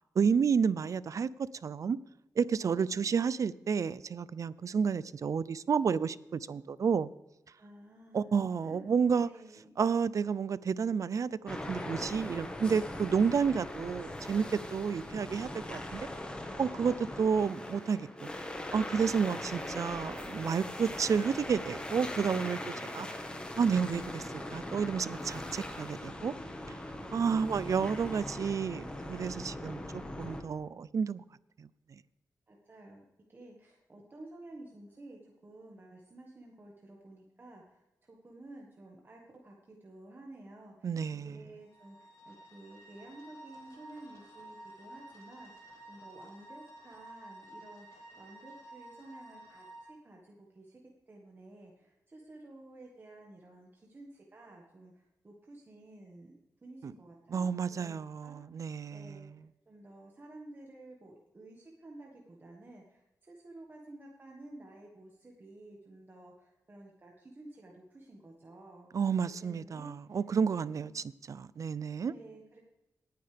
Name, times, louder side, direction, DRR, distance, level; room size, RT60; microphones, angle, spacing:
voice 1, 0.2-1.3 1.6-2.0 2.4-7.1 8.1-9.3 9.8-14.4 14.7-16.1 16.6-18.3 18.7-23.1 23.6-24.2 24.5-26.3 27.1-31.2 31.6-31.7 40.8-41.4 56.8-56.9 57.3-59.2 68.9-72.1, right 6 dB, 55° right, 0.4 m, -31 dB
voice 2, 2.4-3.2 7.6-8.9 9.2-9.8 22.8-23.3 32.5-40.9 41.2-50.8 51.1-58.4 58.9-69.1 69.4-70.2 70.5-71.0 72.0-72.6, right 2 dB, 35° right, 1.6 m, -52 dB
sound 1, 11.5-30.4, left 1 dB, 15° left, 1.4 m, -40 dB
sound 2, 41.6-49.8, right 1 dB, 55° left, 3.2 m, -52 dB
19.5 x 9.3 x 3.4 m
wide cardioid pair, 135°, 6 cm